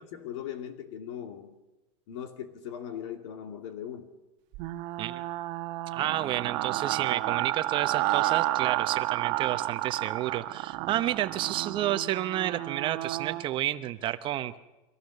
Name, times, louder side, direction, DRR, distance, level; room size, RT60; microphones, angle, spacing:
voice 1, 0.0-1.5 2.1-4.2, left 9 dB, 65° left, 6 dB, 2.8 m, -39 dB
sound 1, 4.5-13.4, right 16 dB, 45° right, 1.2 m, -31 dB
voice 2, 5.9-14.6, right 13 dB, 30° right, 11 dB, 0.9 m, -30 dB
24.5 x 16.5 x 6.6 m, 1.0 s
supercardioid pair, 150°, 16 cm